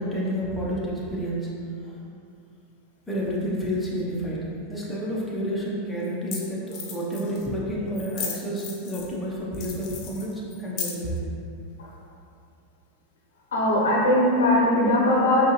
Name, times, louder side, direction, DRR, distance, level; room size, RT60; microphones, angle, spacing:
voice 1, 0.0-1.5 3.1-4.4 4.7-11.2, equal, 5° left, -7 dB, 1.0 m, -29 dB
sound 1, 5.2-5.3 6.0-6.1 6.3-6.4 6.7-7.5 7.9-9.2 9.5-11.2, left 6 dB, 45° left, 0.8 m, -35 dB
voice 2, 13.5-15.4, left 1 dB, 90° left, -3 dB, 0.9 m, -20 dB
5.3 x 2.6 x 3.2 m, 2.5 s
hypercardioid pair, 115°, 0 cm